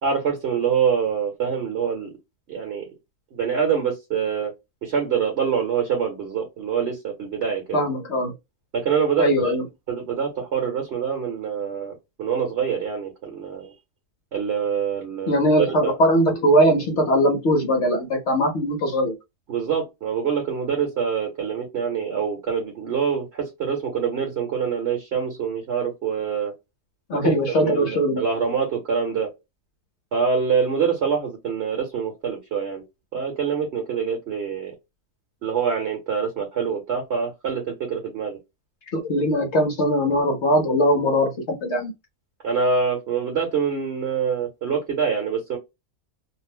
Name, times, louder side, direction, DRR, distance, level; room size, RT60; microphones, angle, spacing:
voice 1, 0.0-2.1 2.5-2.9 3.3-4.5 4.8-7.8 8.7-9.5 9.9-13.7 14.3-15.4 15.8-16.0 19.5-26.5 27.2-29.3 30.1-32.8 33.1-34.7 35.4-38.4 42.4-45.6, right 6 dB, 50° right, 1.0 m, -25 dB
voice 2, 7.7-8.3 9.2-9.7 15.3-19.1 27.1-28.2 38.9-41.9, equal, 60° left, 0.8 m, -20 dB
2.6 x 2.0 x 3.4 m
omnidirectional pair, 1.6 m